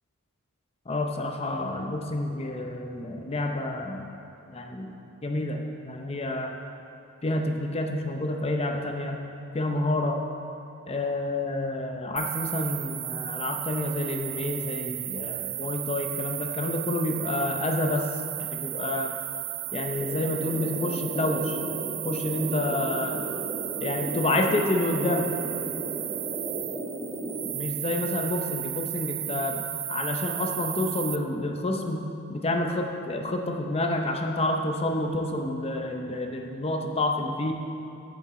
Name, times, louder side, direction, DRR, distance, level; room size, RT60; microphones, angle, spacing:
voice 1, 0.9-4.1 4.5-6.5 7.2-9.2 9.5-10.2 10.9-18.1 18.4-19.1 19.7-21.6 22.0-23.2 23.8-25.3 27.5-29.6 29.9-32.0 32.3-37.5, left 2 dB, 25° left, 3 dB, 0.6 m, -29 dB
sound 1, 12.2-31.2, right 17 dB, 70° right, 0.3 m, -34 dB
sound 2, 20.0-27.5, right 1 dB, 5° right, 1.0 m, -35 dB
8.9 x 7.1 x 3.8 m, 2.9 s
head